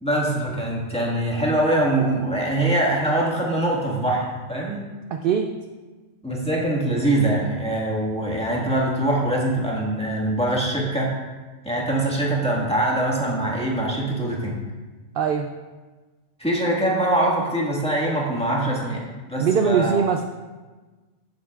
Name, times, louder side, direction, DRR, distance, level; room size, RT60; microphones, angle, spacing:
voice 1, 0.0-4.8 6.2-11.1 11.6-14.6 16.4-19.0 19.3-20.1, right 1 dB, 5° left, -4 dB, 1.7 m, -23 dB
voice 2, 5.1-5.5 15.1-15.5 19.4-20.2, right 7 dB, 60° right, 5 dB, 0.6 m, -21 dB
15.0 x 7.6 x 2.4 m, 1.3 s
omnidirectional pair, 1.4 m